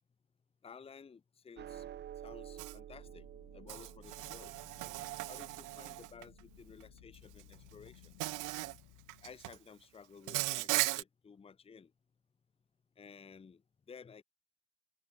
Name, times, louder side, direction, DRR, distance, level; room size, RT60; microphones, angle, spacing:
voice 1, 0.6-1.8 2.2-3.3 3.5-4.5 5.3-8.1 9.2-11.9 13.0-13.6 13.9-14.2, left 6 dB, 15° left, 1.1 m, -54 dB
sound 1, 1.6-8.1, right 11 dB, 30° right, 0.7 m, -52 dB
Insect, 2.6-2.8 3.7-6.2 7.4-7.5 8.2-8.8 9.1-9.6 10.3-11.0, right 20 dB, 55° right, 1.1 m, -37 dB
sound 2, 2.9-9.6, left 23 dB, 70° left, 2.7 m, -61 dB
open air
cardioid pair, 140°, 36 cm